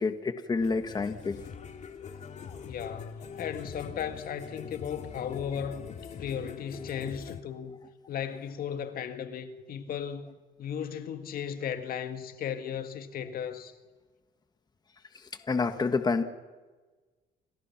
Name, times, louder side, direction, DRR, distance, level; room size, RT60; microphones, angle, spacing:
voice 1, 0.0-1.4 15.1-16.2, left 4 dB, 25° left, 1.6 m, -28 dB
sound 1, 0.6-7.4, left 6 dB, 45° left, 2.2 m, -43 dB
voice 2, 2.7-5.9 6.2-7.7 8.1-13.7, left 8 dB, 60° left, 2.0 m, -36 dB
29.5 x 25.0 x 6.0 m
cardioid pair, 110°, 17 cm